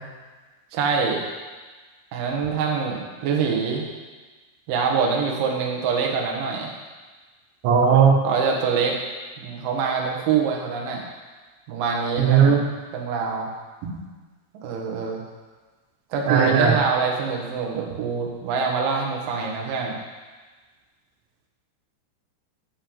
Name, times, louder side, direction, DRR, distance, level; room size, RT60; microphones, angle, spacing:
voice 1, 0.7-1.4 2.1-3.9 4.7-6.7 8.2-9.0 9.4-11.0 11.7-12.6 12.9-13.5 14.6-15.2 16.1-19.9, right 5 dB, 65° right, -1 dB, 2.5 m, -25 dB
voice 2, 7.6-8.2 12.2-12.6 16.3-16.8, right 6 dB, 90° right, 1 dB, 3.5 m, -16 dB
8.7 x 5.4 x 7.8 m, 1.3 s
omnidirectional pair, 5.0 m